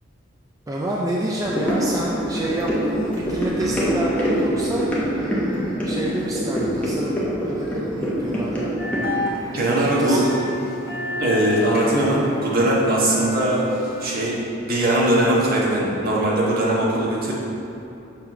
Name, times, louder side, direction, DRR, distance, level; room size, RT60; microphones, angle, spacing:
voice 1, 0.7-8.7 9.6-10.4, right 1 dB, 15° right, -3 dB, 0.4 m, -28 dB
sound 1, 1.4-10.8 11.1-11.2, equal, 5° left, 0.9 m, -25 dB
sound 2, 8.8-14.4, left 1 dB, 50° left, 1.0 m, -30 dB
voice 2, 9.5-10.2 11.2-13.7 14.0-17.3, right 1 dB, 50° right, -5 dB, 1.3 m, -20 dB
6.5 x 3.3 x 5.9 m, 2.9 s
head